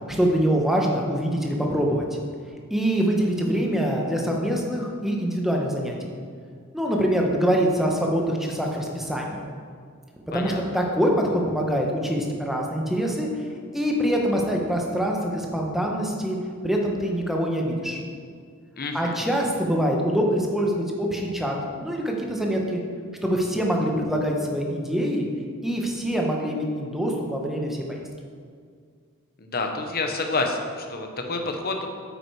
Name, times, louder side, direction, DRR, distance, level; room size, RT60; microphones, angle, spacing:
voice 1, 0.1-2.2 2.7-6.1 6.7-9.4 10.3-13.3 13.7-16.4 16.6-18.0 18.9-21.6 21.8-22.8 23.2-25.3 25.6-28.1, equal, ahead, 0 dB, 1.2 m, -24 dB
voice 2, 18.8-19.2 29.4-31.9, left 3 dB, 45° left, 3 dB, 1.1 m, -28 dB
8.9 x 8.1 x 4.8 m, 2.1 s
head